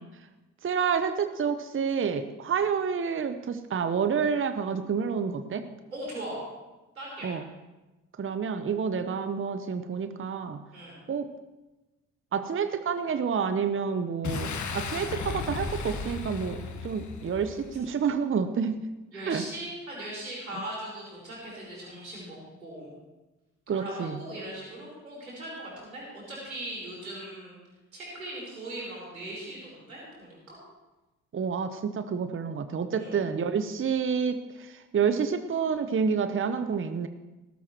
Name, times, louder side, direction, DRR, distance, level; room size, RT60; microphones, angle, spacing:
voice 1, 0.6-5.7 7.2-7.4 8.2-10.6 11.1-11.3 12.3-18.8 19.2-19.4 23.7-24.2 31.3-37.1, right 6 dB, 30° right, 10 dB, 1.0 m, -29 dB
voice 2, 5.9-6.4 6.9-7.3 10.7-11.0 19.1-22.9 23.7-27.6 27.9-30.6 32.9-33.2, right 1 dB, 85° right, -4 dB, 4.3 m, -39 dB
Boom, 14.2-17.9, left 5 dB, 45° left, 1.6 m, -35 dB
19.0 x 12.5 x 3.1 m, 1.1 s
figure-of-eight pair, 40°, 41 cm